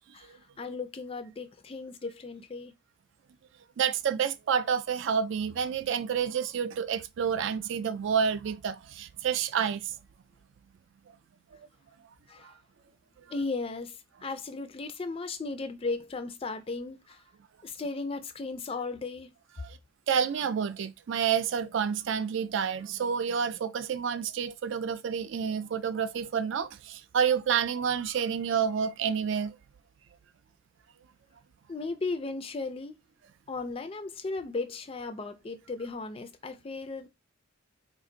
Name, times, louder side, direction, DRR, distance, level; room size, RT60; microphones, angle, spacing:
voice 1, 0.1-2.7 12.3-12.5 13.3-17.2 17.6-19.3 31.7-33.0 33.5-37.1, left 3 dB, 25° left, 0.3 m, -36 dB
voice 2, 3.8-9.9 11.5-11.6 19.6-19.8 20.1-29.5, right 7 dB, 60° right, 0.3 m, -29 dB
2.6 x 2.4 x 3.8 m
head